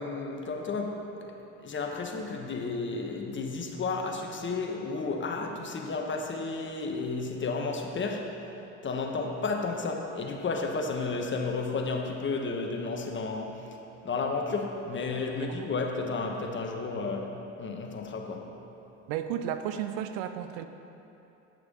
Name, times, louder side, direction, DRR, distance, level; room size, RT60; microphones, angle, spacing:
voice 1, 0.0-1.3 1.6-8.4 8.8-13.6 14.0-18.5, left 3 dB, 30° left, 2 dB, 1.3 m, -32 dB
voice 2, 19.1-20.7, right 10 dB, 70° right, 9 dB, 0.7 m, -33 dB
10.5 x 6.6 x 5.4 m, 2.9 s
hypercardioid pair, 80°, 37 cm